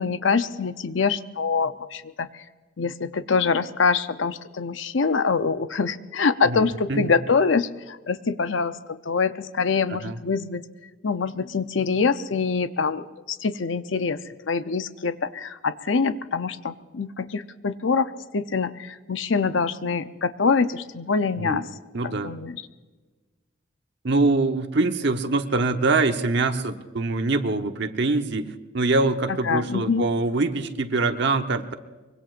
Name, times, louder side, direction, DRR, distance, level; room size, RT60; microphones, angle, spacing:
voice 1, 0.0-2.4 2.8-10.6 11.0-21.7 22.0-22.6 29.5-30.0, left 5 dB, 75° left, 11 dB, 0.7 m, -25 dB
voice 2, 6.4-7.0 9.9-10.2 21.4-21.6 21.9-22.3 24.0-28.5 28.7-31.7, right 3 dB, 65° right, 7 dB, 1.1 m, -24 dB
24.5 x 22.5 x 2.6 m, 1.3 s
head